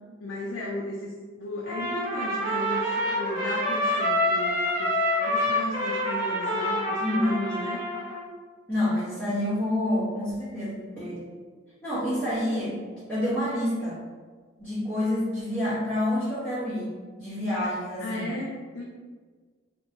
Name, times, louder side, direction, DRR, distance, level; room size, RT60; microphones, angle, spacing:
voice 1, 0.2-1.1 1.4-7.8 18.0-18.8, left 1 dB, 75° left, -3 dB, 0.4 m, -35 dB
Trumpet, 1.7-8.2, left 1 dB, 25° right, 1.4 m, -27 dB
voice 2, 8.7-11.3 11.8-12.8 13.1-14.0 14.6-16.9 17.2-18.3, left 1 dB, 10° left, -15 dB, 0.9 m, -28 dB
2.8 x 2.5 x 2.7 m, 1.5 s
head